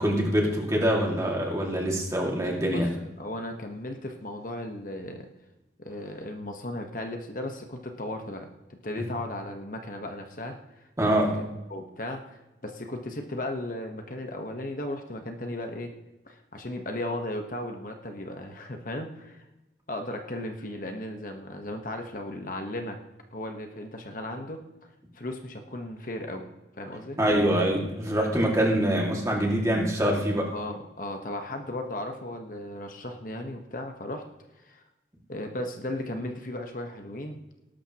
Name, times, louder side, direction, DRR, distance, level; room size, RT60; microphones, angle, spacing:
voice 1, 0.0-2.9 11.0-11.4 27.2-30.5, right 1 dB, 15° right, -1 dB, 2.1 m, -24 dB
voice 2, 3.2-5.3 5.8-8.5 8.8-11.4 11.7-15.9 16.3-19.5 19.9-23.0 23.3-24.9 25.1-26.5 26.7-27.2 30.5-34.2 34.6-34.8 35.3-37.4, left 1 dB, 50° left, 4 dB, 1.1 m, -36 dB
19.0 x 12.0 x 3.0 m, 0.99 s
head